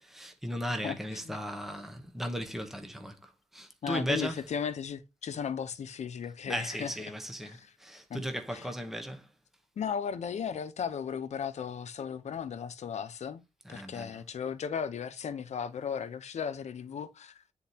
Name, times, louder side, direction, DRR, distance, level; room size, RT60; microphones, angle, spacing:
voice 1, 0.0-4.4 6.5-9.3 13.6-14.1, equal, 5° right, 0.9 m, -36 dB
voice 2, 0.8-1.4 3.8-6.9 7.4-7.7 8.1-8.2 8.5-8.7 9.8-13.4 13.7-17.4, left 7 dB, 75° left, 0.8 m, -36 dB
9.4 x 4.0 x 2.8 m
wide cardioid pair, 145°, 12 cm